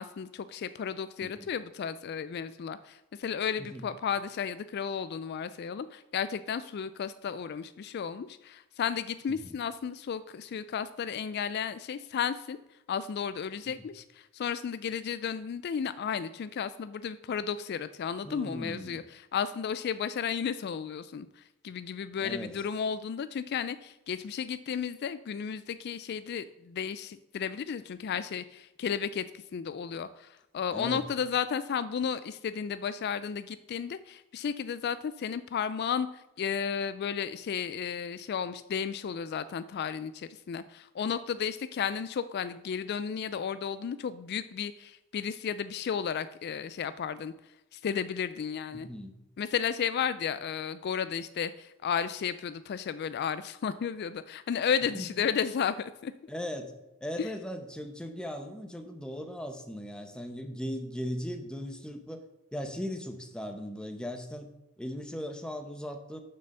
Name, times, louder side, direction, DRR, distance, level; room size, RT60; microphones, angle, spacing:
voice 1, 0.0-12.6 12.9-48.9 49.4-56.1 57.2-57.3, left 7 dB, 50° left, 14 dB, 0.3 m, -33 dB
voice 2, 18.2-19.0 22.2-22.6 30.7-31.0 48.7-49.1 54.9-55.1 56.3-56.7 57.0-62.2 62.5-64.5 64.8-66.2, equal, 5° left, 6 dB, 0.9 m, -38 dB
6.8 x 6.8 x 6.5 m, 0.93 s
head